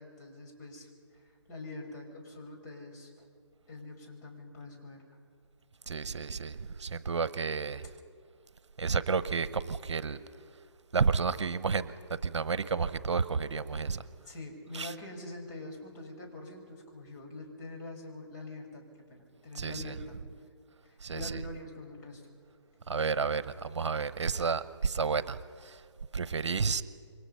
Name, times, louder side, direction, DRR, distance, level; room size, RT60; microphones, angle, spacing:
voice 1, 0.0-3.3 3.7-5.0 14.3-20.2 20.8-22.3, left 2 dB, 35° left, 0 dB, 5.8 m, -45 dB
voice 2, 5.9-7.9 8.8-10.2 10.9-14.0 14.7-14.9 19.5-19.9 21.0-21.4 22.9-25.8 26.1-26.8, right 5 dB, 70° right, 15 dB, 1.0 m, -31 dB
28.5 x 24.0 x 5.7 m, 2.2 s
hypercardioid pair, 155°, 16 cm